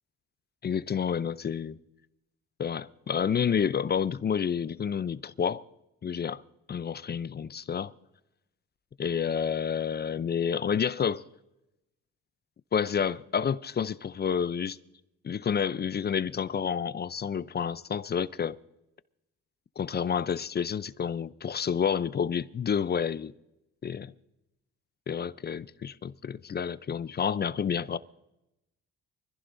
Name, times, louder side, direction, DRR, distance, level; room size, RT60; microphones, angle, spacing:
voice 1, 0.6-1.8 2.6-5.6 6.0-6.4 6.7-7.9 9.0-11.2 12.7-14.8 15.2-18.6 19.8-23.3 23.8-24.1 25.1-28.0, left 7 dB, 35° left, 0.5 m, -29 dB
24.5 x 15.0 x 2.6 m
cardioid pair, 90°, 30 cm